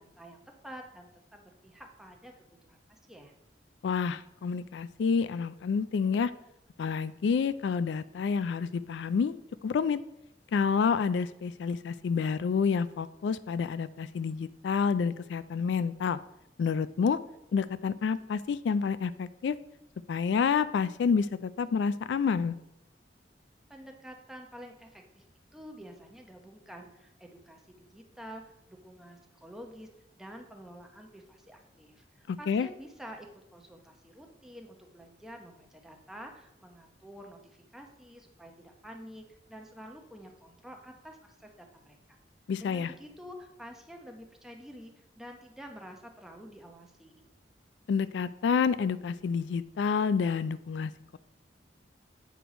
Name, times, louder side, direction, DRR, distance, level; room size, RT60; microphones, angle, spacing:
voice 1, 0.0-3.3 23.7-25.2 25.5-29.9 30.2-42.2 42.6-47.2, equal, 5° right, 2 dB, 0.9 m, -49 dB
voice 2, 3.8-6.3 6.8-9.3 9.6-10.0 10.5-16.2 16.6-17.2 17.5-19.6 20.1-22.6 32.3-32.7 42.5-42.9 47.9-51.2, left 6 dB, 85° left, 16 dB, 0.3 m, -28 dB
8.1 x 4.6 x 5.1 m, 0.87 s
head